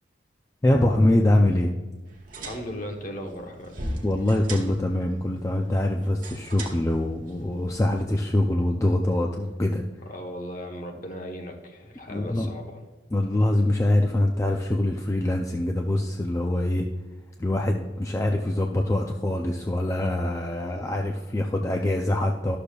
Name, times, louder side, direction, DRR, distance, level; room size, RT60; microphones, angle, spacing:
voice 1, 0.6-1.7 4.0-9.8 12.1-12.5 13.1-16.9 17.4-22.6, left 1 dB, 15° left, 2 dB, 0.4 m, -24 dB
sound 1, 2.1-8.0, right 1 dB, 45° right, 1.2 m, -40 dB
voice 2, 2.4-3.8 10.1-12.8, equal, 45° left, 3 dB, 1.0 m, -37 dB
11.5 x 6.7 x 2.3 m, 1.2 s
head